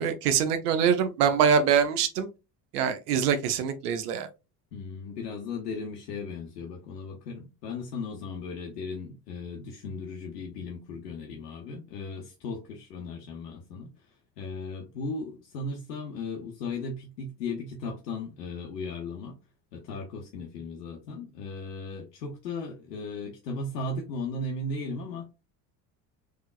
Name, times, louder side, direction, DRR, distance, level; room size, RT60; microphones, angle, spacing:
voice 1, 0.0-2.3 2.7-4.3, right 7 dB, 65° right, 0.8 m, -24 dB
voice 2, 4.7-19.4 19.7-25.3, left 3 dB, 70° left, 0.8 m, -36 dB
3.6 x 3.3 x 2.3 m
figure-of-eight pair, 65°, 50 cm